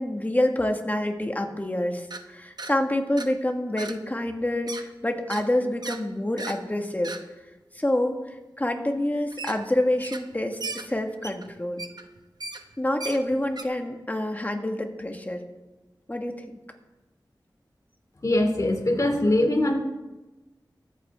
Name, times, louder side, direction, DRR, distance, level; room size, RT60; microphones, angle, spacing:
voice 1, 0.0-7.1 7.7-11.8 12.8-15.4 16.1-16.4, left 1 dB, 20° left, 4 dB, 1.7 m, -27 dB
sound 1, 2.1-2.2 2.6-2.7 3.2-3.3 3.8-4.0 4.3-4.8 5.3-5.4 5.8-6.0 6.4-6.6 7.0-7.2 9.3-9.6 10.0-10.3 10.6-13.6, right 3 dB, 60° right, 1.0 m, -36 dB
voice 2, 18.2-19.7, left 1 dB, 45° left, 2 dB, 2.6 m, -22 dB
23.0 x 8.8 x 3.6 m, 1.1 s
wide cardioid pair, 70°, 8 cm